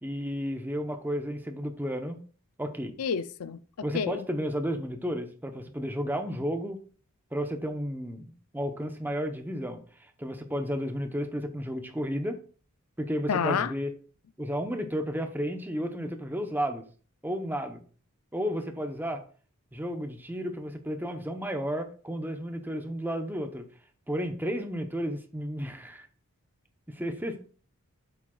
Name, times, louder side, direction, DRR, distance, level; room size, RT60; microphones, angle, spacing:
voice 1, 0.0-2.2 2.6-2.9 3.8-6.8 7.3-12.4 13.0-13.9 14.4-16.8 17.2-17.8 18.3-19.2 19.7-23.7 24.1-26.1 26.9-27.4, equal, 10° right, 0.9 m, -32 dB
voice 2, 3.0-4.2 13.3-13.7, left 6 dB, 80° left, 0.5 m, -29 dB
8.2 x 7.6 x 2.4 m
head